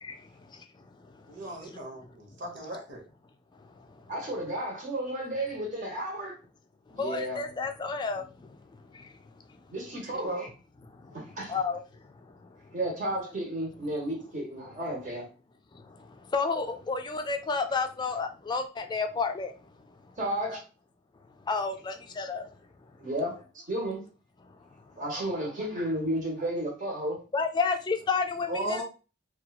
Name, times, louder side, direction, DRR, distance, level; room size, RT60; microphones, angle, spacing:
voice 1, 0.0-2.1 3.5-4.1 6.9-9.7 10.9-12.8 15.7-20.2 21.4-23.0 24.4-25.0 27.3-28.8, left 4 dB, 25° left, 0.3 m, -33 dB
voice 2, 1.3-3.0 10.2-10.5 28.5-28.8, right 1 dB, 90° right, 0.9 m, -36 dB
voice 3, 4.1-6.4 6.9-7.4 9.7-10.5 11.1-11.6 12.7-15.3 20.2-20.6 23.0-24.0 25.0-27.2, right 1 dB, 45° right, 1.1 m, -33 dB
2.9 x 2.3 x 2.2 m
head